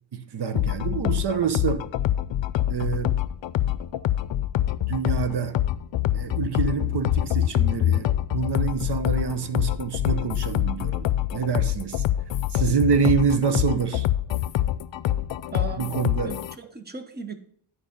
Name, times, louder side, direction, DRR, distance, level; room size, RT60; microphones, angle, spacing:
voice 1, 0.1-1.9 2.7-3.2 4.9-5.6 6.1-12.0 12.5-14.1 15.8-16.4, right 6 dB, 60° right, 0.9 m, -26 dB
sound 1, 0.6-16.6, left 12 dB, 75° left, 0.5 m, -25 dB
voice 2, 15.5-15.9 16.2-17.4, right 4 dB, 20° right, 0.9 m, -36 dB
11.0 x 4.8 x 5.3 m
wide cardioid pair, 140°, 45 cm